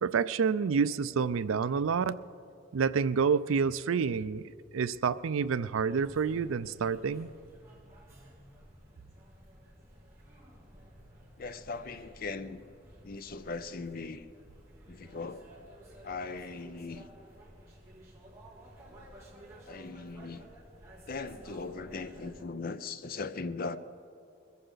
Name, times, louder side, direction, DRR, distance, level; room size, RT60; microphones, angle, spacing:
voice 1, 0.0-2.2 2.7-4.4 4.7-7.3, right 6 dB, 75° right, 0.4 m, -28 dB
sound 1, 5.9-22.4, equal, 15° right, 2.9 m, -53 dB
voice 2, 11.4-12.6 13.0-14.3 14.9-15.5 16.0-17.1 19.7-20.5 21.1-23.8, left 4 dB, 45° left, 0.5 m, -39 dB
22.0 x 14.5 x 4.0 m
head